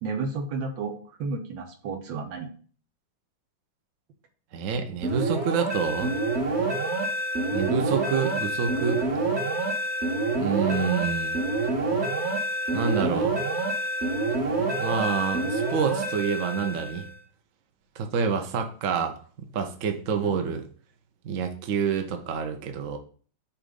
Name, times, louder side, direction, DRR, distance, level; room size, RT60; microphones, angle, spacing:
voice 1, 0.0-2.5 20.2-20.4, right 4 dB, 75° right, 3 dB, 1.8 m, -32 dB
voice 2, 4.5-6.1 7.5-9.0 10.4-11.4 12.7-13.3 14.8-17.0 18.0-20.6 21.2-23.0, right 6 dB, 55° right, 5 dB, 0.9 m, -27 dB
sound 1, 5.0-17.2, right 2 dB, 40° right, 1.3 m, -27 dB
7.2 x 2.5 x 5.1 m, 0.42 s
omnidirectional pair, 2.1 m